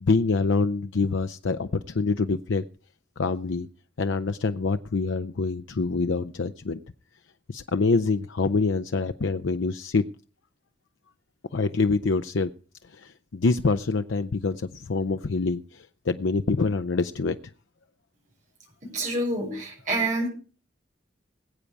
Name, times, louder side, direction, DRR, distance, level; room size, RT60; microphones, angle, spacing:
voice 1, 0.0-1.7 1.9-2.6 3.2-3.7 4.0-6.8 7.5-10.0 11.5-12.5 13.3-15.6 16.1-17.4, left 3 dB, 80° left, 10 dB, 0.6 m, -25 dB
voice 2, 18.8-20.3, right 2 dB, 40° right, -1 dB, 6.5 m, -27 dB
21.0 x 8.5 x 4.7 m, 0.38 s
head